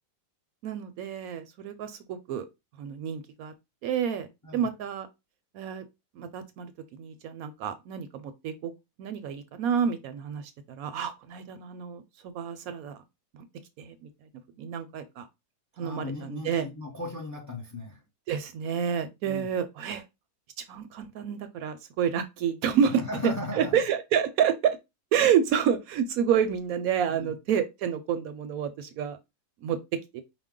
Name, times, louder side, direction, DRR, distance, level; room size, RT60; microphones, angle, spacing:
voice 1, 0.6-2.5 2.8-3.5 3.8-4.3 4.5-5.1 5.5-5.8 6.2-6.7 7.0-8.7 9.0-12.0 12.3-13.0 13.3-13.4 13.8-14.1 14.6-15.3 15.8-16.7 18.3-20.0 20.7-22.9 23.2-24.8 25.1-29.2 29.6-29.8 30.1-30.2, right 8 dB, 70° right, 1.0 m, -29 dB
voice 2, 15.8-18.0 19.2-19.5 22.8-23.7 27.1-27.3, left 2 dB, 15° left, 0.6 m, -36 dB
5.0 x 2.1 x 3.6 m
omnidirectional pair, 1.6 m